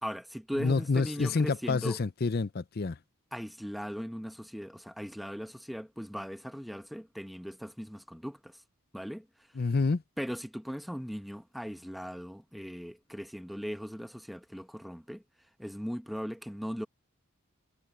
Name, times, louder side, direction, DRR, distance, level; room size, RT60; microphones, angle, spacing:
voice 1, 0.0-2.0 3.3-8.6 8.9-9.3 10.2-15.2 15.6-16.9, equal, ahead, 1.0 m, -39 dB
voice 2, 0.6-3.0 9.6-10.0, left 4 dB, 45° left, 0.5 m, -28 dB
head